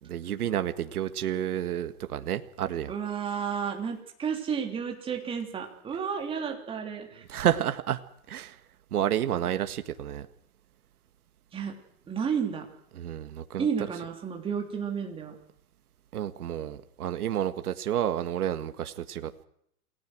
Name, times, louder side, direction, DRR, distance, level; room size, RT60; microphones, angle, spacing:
voice 1, 0.0-2.9 7.3-8.0 8.3-8.6 8.9-10.3 13.0-13.7 16.1-19.4, right 10 dB, 75° right, 8 dB, 1.9 m, -30 dB
voice 2, 2.9-7.3 11.5-11.7 12.1-12.7 13.6-15.3, right 7 dB, 10° right, 2 dB, 3.3 m, -32 dB
28.0 x 19.0 x 6.3 m, 0.71 s
hypercardioid pair, 160°, 45 cm